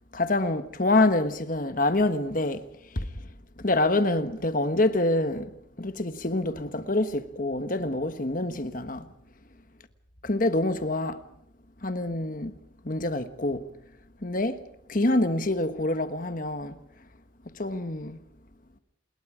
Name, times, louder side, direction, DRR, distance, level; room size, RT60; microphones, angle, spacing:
voice 1, 0.1-2.6 2.9-3.1 3.6-5.5 5.8-9.1 10.2-11.2 11.8-12.5 12.8-13.6 14.2-14.6 14.9-16.8 17.5-18.2, left 2 dB, 40° left, 1.3 m, -26 dB
28.5 x 21.0 x 5.0 m
head